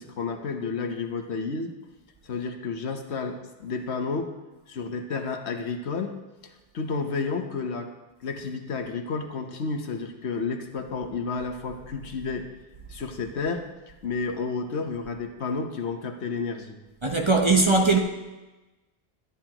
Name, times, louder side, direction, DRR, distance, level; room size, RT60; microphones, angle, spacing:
voice 1, 0.0-1.7 2.2-4.3 4.7-6.2 6.4-7.9 8.2-12.5 12.9-13.7 14.0-16.8, left 4 dB, 80° left, 1.2 m, -31 dB
voice 2, 17.0-18.0, right 3 dB, 30° right, 0.7 m, -20 dB
12.5 x 9.8 x 2.9 m
omnidirectional pair, 1.1 m